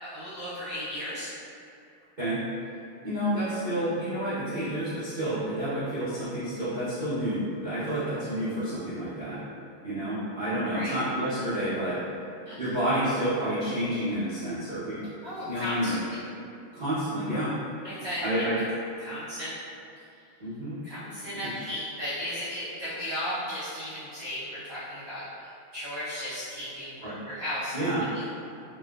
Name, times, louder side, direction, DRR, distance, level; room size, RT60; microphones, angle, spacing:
voice 1, 0.0-1.3 10.7-10.9 12.4-12.6 15.2-16.2 17.8-18.2 19.0-19.6 20.8-27.0 27.3-28.2, left 1 dB, 50° right, -13 dB, 1.0 m, -35 dB
voice 2, 3.0-9.4 9.8-12.0 12.6-15.1 15.5-16.0 16.7-17.5 18.2-18.6 20.4-20.8 21.5-21.6 27.0-27.2 27.7-28.0, right 1 dB, 75° right, -16 dB, 0.4 m, -29 dB
3.1 x 2.9 x 2.3 m, 2.6 s
omnidirectional pair, 2.4 m